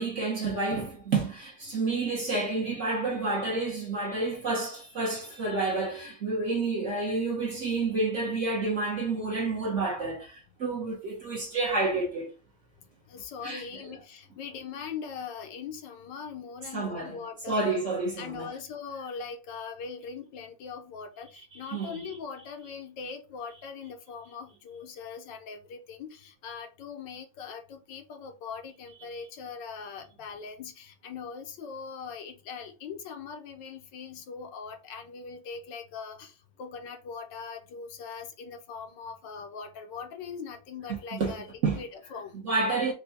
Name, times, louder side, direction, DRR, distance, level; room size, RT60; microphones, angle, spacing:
voice 1, 0.0-12.3 13.4-13.6 16.7-17.2 17.5-18.5 21.5-22.1 40.9-41.3 41.6-41.8 42.4-42.9, right 3 dB, 50° right, 1.0 m, -29 dB
voice 2, 13.1-17.7 18.2-41.5 41.7-42.4, left 6 dB, 75° left, 1.4 m, -41 dB
4.5 x 2.3 x 4.0 m
omnidirectional pair, 2.1 m